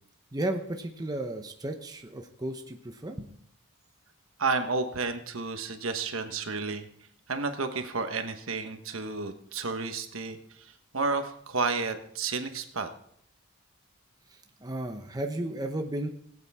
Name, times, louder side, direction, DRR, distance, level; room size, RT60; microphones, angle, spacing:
voice 1, 0.3-3.3 14.3-16.1, right 1 dB, 20° right, 4 dB, 0.8 m, -34 dB
voice 2, 4.4-6.8 7.3-12.9, right 4 dB, 65° right, 7 dB, 1.2 m, -31 dB
19.5 x 8.4 x 3.6 m, 0.66 s
head